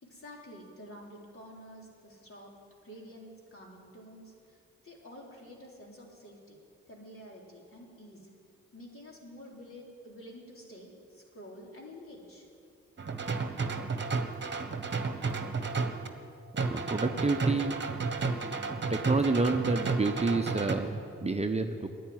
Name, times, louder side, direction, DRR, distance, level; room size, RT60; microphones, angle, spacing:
voice 1, 0.0-2.6 2.8-6.6 6.9-8.3 8.7-12.5, equal, 45° left, -2 dB, 3.9 m, -49 dB
sound 1, 13.0-16.1 16.6-20.7, right 4 dB, 35° right, 1.4 m, -32 dB
voice 2, 16.7-17.8 18.2-21.9, right 3 dB, 20° right, 5 dB, 0.9 m, -29 dB
10.0 x 9.9 x 9.6 m, 2.4 s
supercardioid pair, 45°, 30 cm